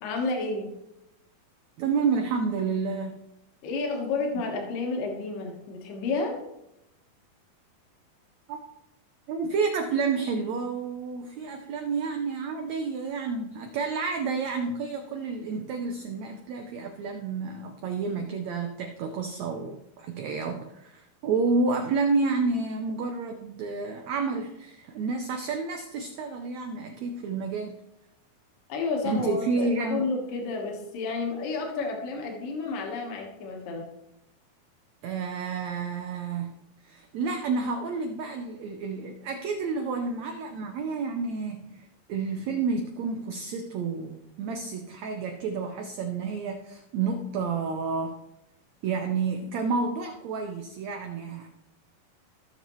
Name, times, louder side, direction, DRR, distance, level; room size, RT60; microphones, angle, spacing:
voice 1, 0.0-0.7 3.6-6.4 28.7-33.9, left 3 dB, 70° left, 1 dB, 3.0 m, -31 dB
voice 2, 1.8-3.3 8.5-8.6 9.3-27.7 29.0-30.1 35.0-36.5 36.8-48.2 48.8-51.5, right 4 dB, 85° right, 4 dB, 1.5 m, -30 dB
15.5 x 6.6 x 3.1 m, 0.87 s
omnidirectional pair, 4.1 m